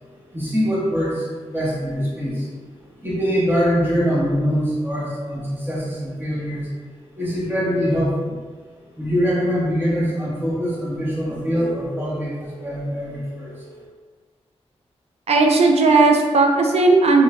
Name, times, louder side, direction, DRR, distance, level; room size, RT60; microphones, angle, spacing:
voice 1, 0.3-2.5 3.0-6.7 7.1-8.4 9.0-13.8, equal, 20° right, -8 dB, 1.3 m, -23 dB
voice 2, 15.3-17.2, right 3 dB, 65° right, 2 dB, 0.4 m, -15 dB
3.1 x 2.9 x 2.4 m, 1.5 s
cardioid pair, 65°, 12 cm